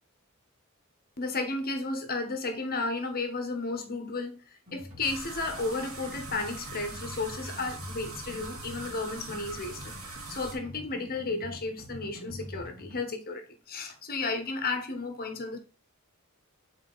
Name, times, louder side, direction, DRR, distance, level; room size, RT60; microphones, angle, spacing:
voice 1, 1.2-4.4 4.7-15.6, left 3 dB, 45° left, 1.2 m, -33 dB
sound 1, 4.7-13.0, left 1 dB, 40° right, 2.6 m, -46 dB
sound 2, 5.0-10.5, right 3 dB, 65° right, 2.3 m, -42 dB
7.4 x 4.1 x 4.0 m
head